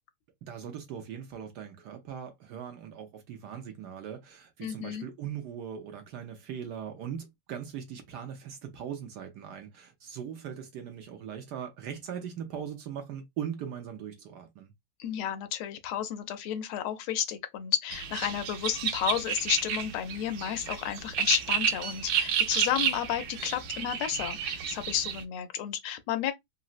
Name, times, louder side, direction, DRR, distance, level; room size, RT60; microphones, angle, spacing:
voice 1, 0.5-14.7, right 8 dB, 70° right, 1.0 m, -40 dB
voice 2, 4.6-5.0 15.0-26.3, left 10 dB, 90° left, 1.5 m, -32 dB
sound 1, 17.9-25.2, right 8 dB, 90° right, 1.5 m, -31 dB
3.9 x 2.0 x 2.4 m
omnidirectional pair, 2.3 m